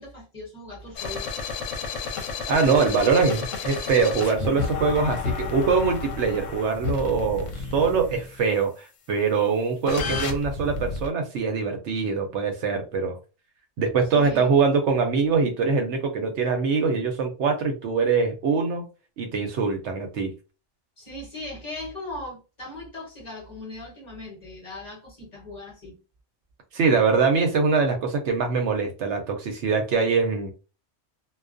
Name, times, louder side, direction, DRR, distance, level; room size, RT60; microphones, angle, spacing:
voice 1, 0.0-1.3 5.5-5.6 14.0-14.5 21.0-26.0, left 2 dB, 35° left, 1.1 m, -39 dB
sound 1, 0.9-8.4 9.9-11.1, left 4 dB, 85° left, 1.0 m, -31 dB
voice 2, 2.5-13.2 13.8-18.8 19.2-20.3 26.7-30.5, right 5 dB, 70° right, 0.8 m, -23 dB
2.3 x 2.3 x 2.4 m
omnidirectional pair, 1.3 m